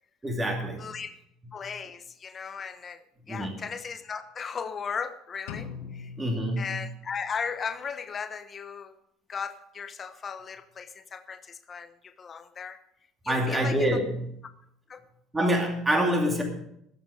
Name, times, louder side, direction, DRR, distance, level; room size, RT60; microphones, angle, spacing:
voice 1, 0.2-0.9 3.3-3.6 5.8-5.9 6.2-6.8 13.3-14.2 15.3-16.4, equal, 15° right, 1 dB, 2.5 m, -26 dB
voice 2, 0.8-1.1 1.5-3.0 3.3-6.1 6.6-8.9 9.3-12.8 13.2-14.0 14.9-15.0, left 6 dB, 30° left, 10 dB, 1.1 m, -36 dB
sound 1, 5.5-7.4, left 7 dB, 90° left, 2.0 m, -42 dB
18.5 x 8.1 x 5.0 m, 0.75 s
cardioid pair, 115°, 0 cm